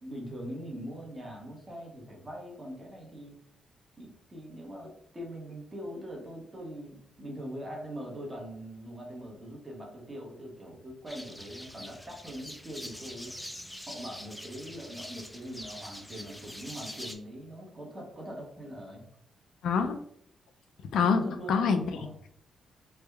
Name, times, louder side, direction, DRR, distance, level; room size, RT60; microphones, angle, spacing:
voice 1, 0.0-3.3 4.0-13.3 13.8-19.0 21.2-21.5 21.9-22.1, equal, 20° right, -1 dB, 1.0 m, -42 dB
sound 1, 11.1-17.1, equal, 5° left, 0.4 m, -44 dB
voice 2, 19.6-20.0 20.9-21.2 21.5-22.3, left 5 dB, 85° left, 6 dB, 0.4 m, -26 dB
3.4 x 2.1 x 3.3 m, 0.66 s
cardioid pair, 140°, 0 cm